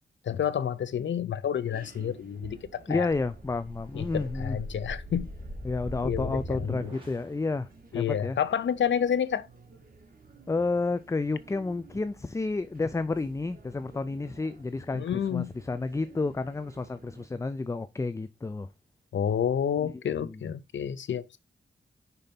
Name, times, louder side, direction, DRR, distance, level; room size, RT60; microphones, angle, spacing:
voice 1, 0.2-3.1 3.9-5.3 6.0-6.9 7.9-9.5 14.9-15.5 19.1-21.4, left 8 dB, 75° left, 0.7 m, -29 dB
sound 1, 1.5-17.3, right 4 dB, 50° right, 1.7 m, -53 dB
voice 2, 2.9-4.6 5.6-8.4 10.5-18.7 20.1-20.4, left 3 dB, 15° left, 0.4 m, -31 dB
sound 2, 3.1-7.4, equal, 25° right, 2.5 m, -40 dB
5.8 x 4.0 x 5.3 m
wide cardioid pair, 95°, 19 cm